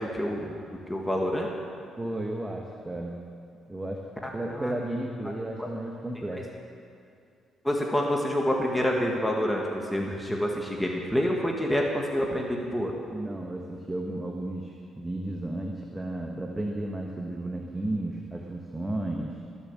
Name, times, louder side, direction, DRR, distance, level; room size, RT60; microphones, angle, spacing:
voice 1, 0.1-0.6 0.9-1.5 4.2-4.3 4.6-4.7 5.6-5.7 6.2-6.4 7.6-12.9, equal, 5° left, -1 dB, 1.8 m, -27 dB
voice 2, 2.0-3.2 3.7-4.0 4.3-6.5 13.1-19.4, right 1 dB, 15° right, 0 dB, 1.4 m, -33 dB
21.0 x 7.3 x 7.4 m, 2.5 s
cardioid pair, 100°, 0 cm